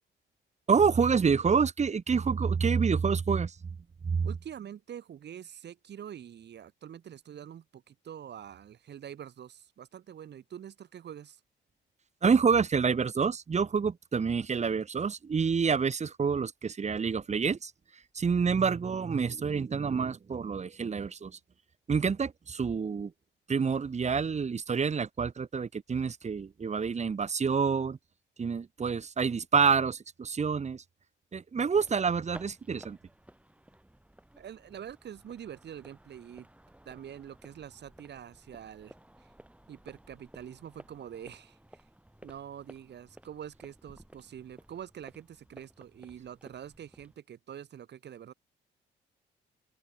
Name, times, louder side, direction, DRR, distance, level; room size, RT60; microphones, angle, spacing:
voice 1, 0.7-3.5 4.0-4.3 12.2-17.7 18.2-21.3 21.9-23.1 23.5-28.0 28.4-30.8 31.3-33.0, right 5 dB, 35° right, 2.0 m, -27 dB
voice 2, 4.2-11.4 34.4-36.5 36.9-39.3 39.7-41.8 42.2-48.3, right 9 dB, 60° right, 2.8 m, -45 dB
sound 1, 31.6-47.2, right 1 dB, 5° right, 6.2 m, -56 dB
open air
cardioid pair, 90°, 20 cm